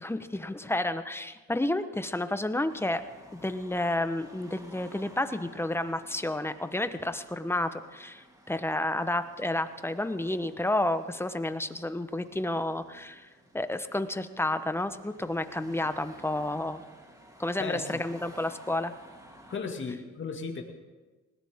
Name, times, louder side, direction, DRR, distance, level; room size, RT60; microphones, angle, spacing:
voice 1, 0.0-3.0 3.3-13.3 13.5-16.8 17.4-18.9, left 1 dB, 10° left, 11 dB, 0.9 m, -31 dB
Car passing by / Traffic noise roadway noise / Engine, 2.7-19.6, equal, 10° right, 3.1 m, -54 dB
voice 2, 17.6-18.0 19.5-20.6, left 5 dB, 40° left, 3 dB, 2.1 m, -35 dB
20.0 x 18.5 x 3.6 m, 1.2 s
cardioid pair, 90°, 30 cm